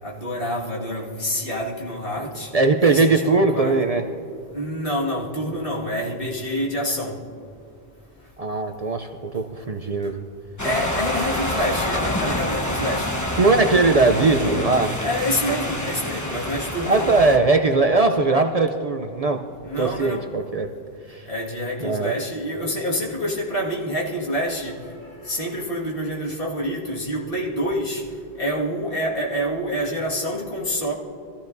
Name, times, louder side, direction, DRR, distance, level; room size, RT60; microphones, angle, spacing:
voice 1, 0.0-2.5 2.8-3.8 4.5-7.2 10.6-13.2 15.0-17.1 19.6-20.3 21.3-28.1 28.4-30.9, equal, 60° left, -4 dB, 2.2 m, -27 dB
voice 2, 2.5-4.1 8.4-10.2 13.4-15.0 16.9-19.4 19.8-20.7 21.1-21.3 21.8-22.1, right 3 dB, 45° right, 5 dB, 0.6 m, -20 dB
sound 1, 10.6-17.4, left 1 dB, 15° left, 1.1 m, -27 dB
23.0 x 14.5 x 2.6 m, 2.5 s
omnidirectional pair, 1.0 m